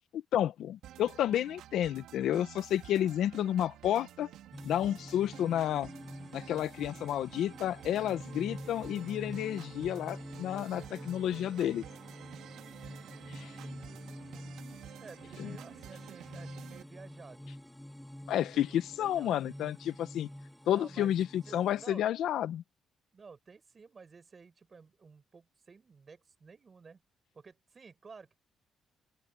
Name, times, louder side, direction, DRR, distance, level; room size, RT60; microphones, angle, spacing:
voice 1, 0.1-4.3 4.6-5.9 6.3-11.8 13.3-13.5 15.4-15.5 18.3-20.3 20.7-22.6, left 11 dB, 70° left, 0.8 m, -31 dB
sound 1, 0.8-16.8, right 12 dB, 80° right, 2.7 m, -51 dB
sound 2, 4.5-21.8, equal, 5° left, 1.2 m, -47 dB
sound 3, 7.1-13.7, right 9 dB, 60° right, 6.4 m, -55 dB
voice 2, 13.4-14.5 15.0-17.5 18.4-19.4 20.7-21.1 21.5-22.0 23.1-27.0 27.3-28.4, right 5 dB, 30° right, 5.4 m, -53 dB
open air
cardioid pair, 125°, 0 cm